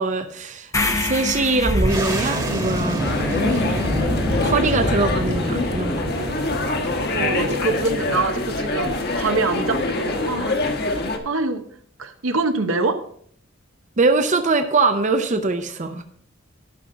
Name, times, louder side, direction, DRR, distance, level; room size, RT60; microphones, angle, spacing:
voice 1, 0.0-3.1 4.4-6.1 14.0-16.0, right 3 dB, 35° right, 7 dB, 0.7 m, -22 dB
sound 1, 0.7-4.9, left 2 dB, 15° left, 0.8 m, -29 dB
sound 2, 1.6-10.8, equal, 20° right, 1.4 m, -27 dB
sound 3, 3.0-11.2, left 2 dB, 50° left, 1.3 m, -25 dB
voice 2, 7.1-10.6 10.9-11.6 12.0-13.0, right 3 dB, 80° right, 8 dB, 1.0 m, -25 dB
12.0 x 5.8 x 5.1 m, 0.62 s
head